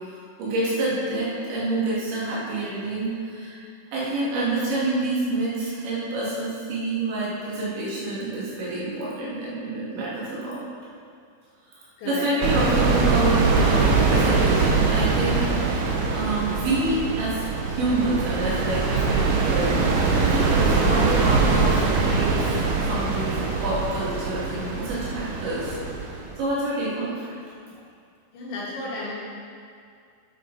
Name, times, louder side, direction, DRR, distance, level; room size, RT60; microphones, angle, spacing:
voice 1, 0.1-3.6 3.9-10.6 11.7-25.8 26.4-27.3, right 2 dB, 70° right, -8 dB, 4.8 m, -28 dB
voice 2, 12.0-12.3 28.3-29.1, left 2 dB, 70° left, -7 dB, 4.4 m, -33 dB
sound 1, 12.4-26.4, right 4 dB, 90° right, 1.8 m, -22 dB
9.7 x 9.4 x 4.2 m, 2.3 s
omnidirectional pair, 5.3 m